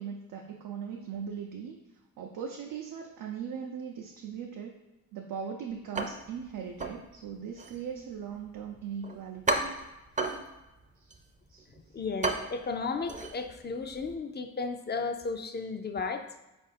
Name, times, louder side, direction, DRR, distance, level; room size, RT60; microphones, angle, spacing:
voice 1, 0.0-1.8 2.2-4.8 5.1-9.6 11.0-11.2 11.5-11.6, right 7 dB, 85° right, 1 dB, 0.5 m, -39 dB
sound 1, 5.9-14.2, right 2 dB, 25° right, 0.5 m, -36 dB
voice 2, 11.9-16.3, left 4 dB, 35° left, 7 dB, 0.4 m, -34 dB
4.5 x 2.5 x 4.1 m, 0.99 s
cardioid pair, 70°, 32 cm